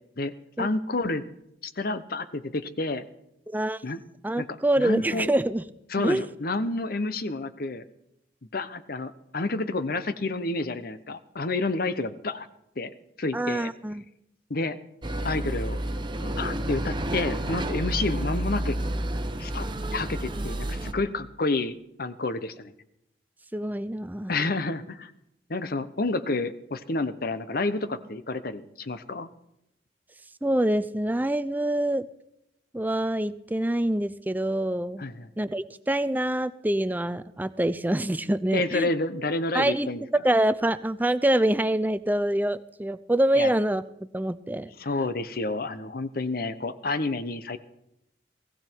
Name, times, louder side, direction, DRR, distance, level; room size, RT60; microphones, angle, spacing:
voice 1, 0.2-1.2 1.6-3.0 3.8-4.0 4.4-4.5 4.8-5.3 5.9-7.8 8.5-12.5 12.8-12.9 13.2-13.7 14.5-14.8 15.2-15.8 16.2-18.8 19.4-19.7 19.9-22.7 24.3-25.1 25.5-29.3 35.0-35.3 38.5-40.0 43.4-43.5 44.8-47.6, left 2 dB, 55° left, 13 dB, 0.9 m, -29 dB
voice 2, 3.5-3.8 4.2-5.6 6.0-6.3 13.3-14.0 23.5-24.3 30.4-32.1 32.7-35.0 35.4-38.9 39.5-39.9 40.2-43.8 44.1-44.7, right 1 dB, 10° right, 14 dB, 0.5 m, -25 dB
sound 1, 15.0-20.9, right 1 dB, 25° right, 1.0 m, -30 dB
19.0 x 15.0 x 4.6 m, 0.82 s
head